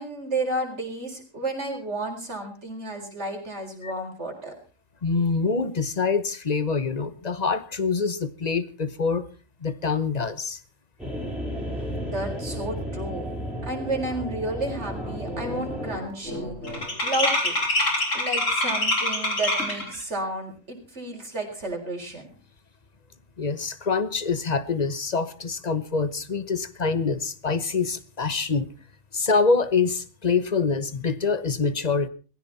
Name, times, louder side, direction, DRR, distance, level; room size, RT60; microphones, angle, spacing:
voice 1, 0.0-4.5 12.0-13.3 13.6-17.6 18.1-22.3, right 2 dB, 55° right, 4.6 m, -32 dB
voice 2, 5.0-9.2 9.6-10.6 23.4-28.7 29.1-32.1, left 4 dB, 35° left, 1.1 m, -25 dB
sound 1, 11.0-16.0, equal, ahead, 5.9 m, -33 dB
sound 2, 14.3-14.4 14.7-15.1 15.3-20.0, left 1 dB, 70° left, 4.9 m, -26 dB
19.0 x 16.0 x 4.2 m
omnidirectional pair, 1.4 m